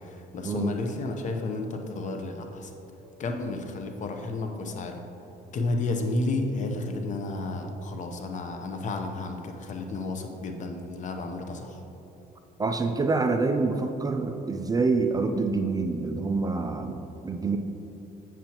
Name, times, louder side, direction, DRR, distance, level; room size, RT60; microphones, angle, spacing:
voice 1, 0.0-2.7 3.2-5.0 5.5-11.8, left 2 dB, 45° left, 4 dB, 0.8 m, -32 dB
voice 2, 12.6-17.6, right 3 dB, 20° right, 6 dB, 0.3 m, -26 dB
7.5 x 7.2 x 3.0 m, 2.9 s
cardioid pair, 110°, 17 cm